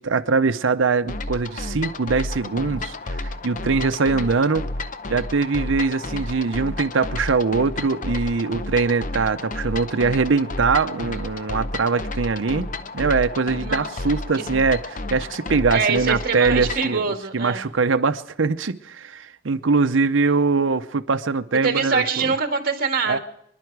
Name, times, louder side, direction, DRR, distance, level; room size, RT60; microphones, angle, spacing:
voice 1, 0.0-4.7 5.1-12.7 12.9-17.0 17.3-22.3 23.1-23.2, right 4 dB, 85° right, 0.7 m, -22 dB
sound 1, 1.1-16.9, left 2 dB, 45° left, 0.7 m, -31 dB
voice 2, 13.6-14.4 15.7-17.7 21.6-23.2, right 5 dB, 50° right, 1.8 m, -24 dB
26.0 x 11.0 x 4.7 m
head